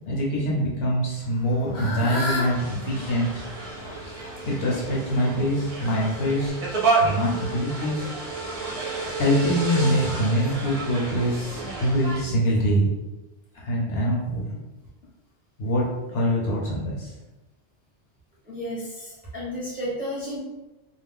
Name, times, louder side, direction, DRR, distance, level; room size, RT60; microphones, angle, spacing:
voice 1, 0.0-3.3 3.9-6.6 7.0-8.1 9.2-12.9 13.5-14.6 15.6-17.1, equal, 65° left, -4 dB, 0.9 m, -24 dB
Fowl / Bird, 1.2-6.5, left 2 dB, 35° left, 0.3 m, -35 dB
sound 1, 2.2-12.2, right 3 dB, 50° right, 0.7 m, -30 dB
voice 2, 18.5-20.4, equal, 10° right, -8 dB, 0.7 m, -32 dB
2.4 x 2.1 x 3.5 m, 1.1 s
omnidirectional pair, 1.2 m